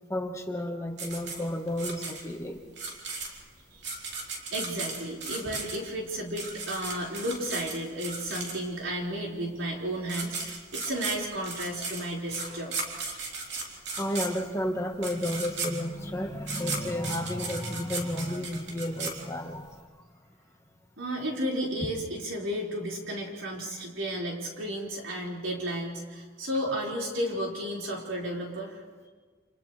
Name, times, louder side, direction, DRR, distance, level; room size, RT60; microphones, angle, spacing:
voice 1, 0.1-2.6 10.9-11.0 11.8-11.9 13.9-19.8, left 1 dB, 15° left, 2 dB, 1.4 m, -32 dB
sound 1, 1.0-8.9 9.7-9.8 10.0-19.7, right 4 dB, 55° right, 3.5 m, -36 dB
voice 2, 3.7-4.1 4.5-12.7 21.0-28.8, equal, 70° right, -3 dB, 5.0 m, -33 dB
29.5 x 28.0 x 3.3 m, 1.5 s
head